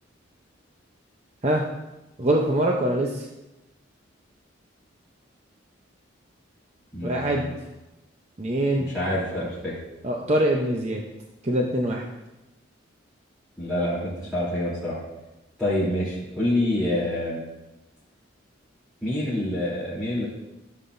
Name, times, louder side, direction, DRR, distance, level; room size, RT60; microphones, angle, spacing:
voice 1, 2.2-3.2 7.0-7.5 8.4-8.9 10.0-11.0 11.4-12.1, right 1 dB, 35° right, 0 dB, 0.7 m, -23 dB
voice 2, 6.9-7.5 8.8-9.7 13.6-14.9 15.6-17.4 19.0-20.3, left 1 dB, 5° right, -11 dB, 3.3 m, -27 dB
15.0 x 7.5 x 2.6 m, 0.99 s
head